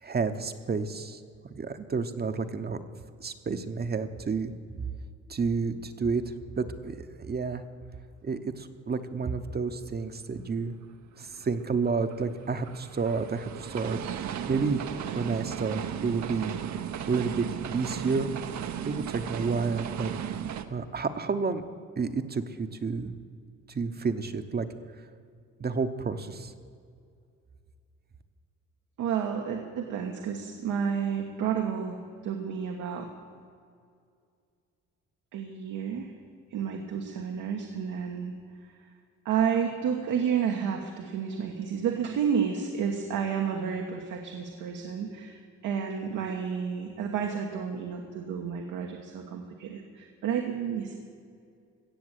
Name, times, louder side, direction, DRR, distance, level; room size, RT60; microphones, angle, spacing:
voice 1, 0.0-1.2 1.5-2.8 3.2-4.5 5.3-6.2 6.6-7.6 8.2-10.7 11.2-14.8 15.1-16.5 17.1-17.5 17.7-18.3 18.8-20.1 20.7-21.6 22.0-23.1 23.7-24.7 25.6-26.5, right 4 dB, 30° right, 8 dB, 0.9 m, -30 dB
sound 1, 11.3-20.7, right 9 dB, 65° right, 0.9 m, -35 dB
voice 2, 29.0-32.0 32.2-33.1 35.3-36.1 36.5-38.3 39.2-50.9, right 7 dB, 85° right, 2 dB, 1.3 m, -31 dB
16.5 x 7.2 x 8.1 m, 2.3 s
cardioid pair, 90°, 30 cm